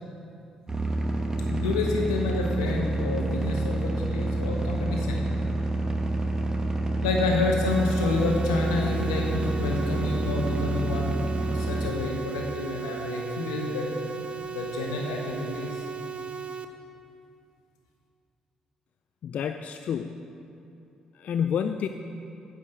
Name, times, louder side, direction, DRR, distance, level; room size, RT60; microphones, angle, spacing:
sound 1, 0.7-11.9, right 2 dB, 20° right, 1.1 m, -28 dB
voice 1, 1.5-5.3 7.0-15.8, left 3 dB, 90° left, 0 dB, 1.0 m, -29 dB
sound 2, 7.6-16.6, right 6 dB, 45° right, 0.6 m, -36 dB
voice 2, 19.2-20.3 21.1-21.9, left 8 dB, 60° left, 7 dB, 0.3 m, -29 dB
9.8 x 4.9 x 6.9 m, 2.6 s
hypercardioid pair, 45°, 3 cm